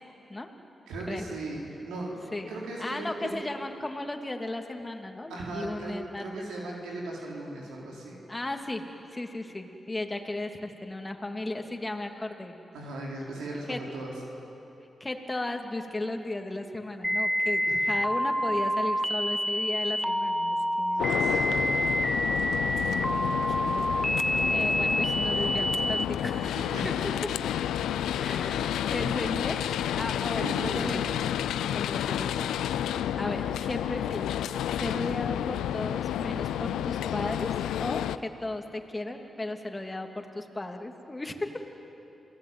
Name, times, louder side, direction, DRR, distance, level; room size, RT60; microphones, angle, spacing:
voice 1, 0.9-2.2 2.5-3.4 5.3-8.2 12.7-14.1 17.7-17.8 21.0-21.9 26.7-26.8 30.4-30.9, right 2 dB, 90° right, -3 dB, 4.1 m, -37 dB
voice 2, 2.8-6.5 8.3-8.9 9.1-12.6 13.7-13.8 15.0-21.1 22.6-23.9 24.5-26.9 28.1-29.6 29.9-31.2 31.6-34.4 34.7-41.6, left 2 dB, 25° left, 4 dB, 2.9 m, -35 dB
sound 1, 17.0-26.0, equal, ahead, 1.1 m, -28 dB
sound 2, 21.0-38.2, left 11 dB, 90° left, 0.5 m, -30 dB
28.0 x 18.5 x 9.4 m, 3.0 s
supercardioid pair, 40°, 0 cm